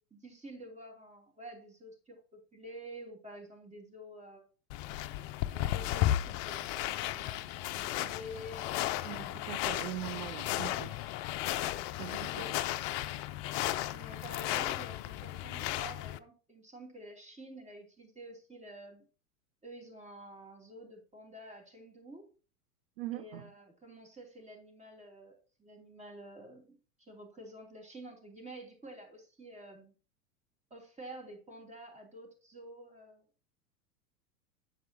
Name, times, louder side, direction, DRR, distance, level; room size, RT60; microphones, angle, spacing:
voice 1, 0.1-4.5 5.5-9.1 12.3-12.6 13.9-19.0 19.6-22.3 23.1-29.9 30.7-33.2, right 1 dB, 15° right, 3.0 m, -49 dB
sound 1, 4.7-16.2, left 14 dB, 40° left, 0.6 m, -34 dB
voice 2, 9.0-11.0 12.0-12.5 23.0-23.5, right 14 dB, 40° right, 0.4 m, -41 dB
9.6 x 7.2 x 2.8 m
figure-of-eight pair, 95°, 48 cm